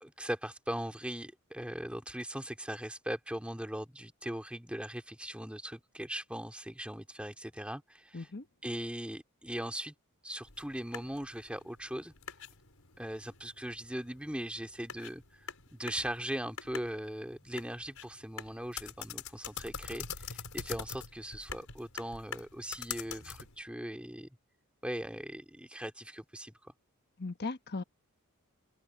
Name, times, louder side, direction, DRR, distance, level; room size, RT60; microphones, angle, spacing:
voice 1, 0.0-8.3 8.6-9.9 10.2-12.1 13.0-24.3 24.8-26.7, right 1 dB, 5° right, 2.4 m, -40 dB
voice 2, 8.1-8.5 27.2-27.8, left 3 dB, 45° left, 1.1 m, -37 dB
sound 1, 10.4-23.6, left 7 dB, 75° left, 5.5 m, -45 dB
open air
head